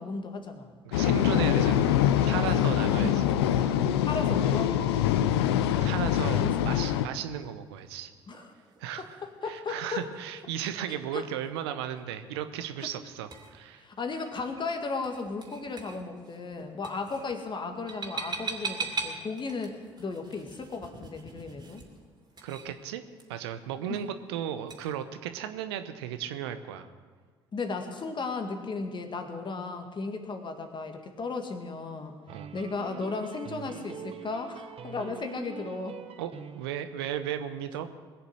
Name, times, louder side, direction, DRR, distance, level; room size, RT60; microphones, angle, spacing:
voice 1, 0.0-0.7 2.9-3.1 4.1-5.1 6.4-6.6 7.0-7.1 8.3-8.5 9.0-10.1 10.9-11.3 12.8-12.9 13.8-21.8 23.9-24.0 27.5-32.2 32.5-36.0, left 4 dB, 35° left, 5 dB, 1.9 m, -35 dB
voice 2, 0.8-1.9 2.2-3.2 3.6-3.8 5.5-8.1 8.8-9.2 9.5-13.8 22.4-23.0 23.3-26.9 32.3-32.5 36.2-37.9, right 10 dB, 75° right, 10 dB, 0.8 m, -35 dB
sound 1, 0.9-7.1, left 10 dB, 75° left, 0.6 m, -24 dB
sound 2, 5.5-24.9, right 4 dB, 30° right, 2.8 m, -44 dB
sound 3, 32.3-36.9, right 9 dB, 45° right, 1.1 m, -44 dB
21.0 x 7.0 x 7.8 m, 1.5 s
figure-of-eight pair, 55°, 13 cm